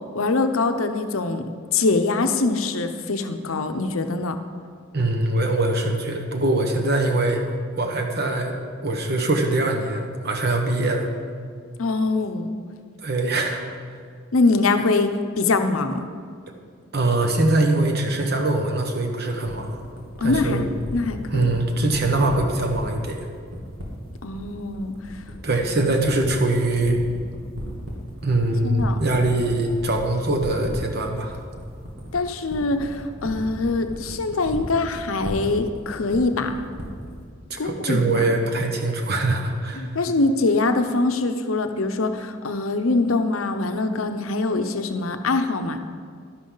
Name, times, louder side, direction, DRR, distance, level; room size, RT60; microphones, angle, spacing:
voice 1, 0.1-1.5 1.7-4.4 11.8-12.5 14.3-16.1 20.2-20.6 20.9-21.5 24.2-24.9 28.6-29.0 29.3-29.4 32.1-36.5 37.6-38.0 39.8-45.8, left 3 dB, 85° left, 8 dB, 0.8 m, -23 dB
voice 2, 4.9-7.4 7.8-8.6 8.8-11.1 13.0-13.6 16.9-19.8 20.2-20.6 21.3-23.2 25.4-27.0 28.2-31.4 37.5-39.9, right 2 dB, 50° right, 3 dB, 1.3 m, -22 dB
sound 1, 19.4-37.2, equal, 85° right, 2.3 m, -35 dB
12.0 x 10.5 x 4.0 m, 2.1 s
head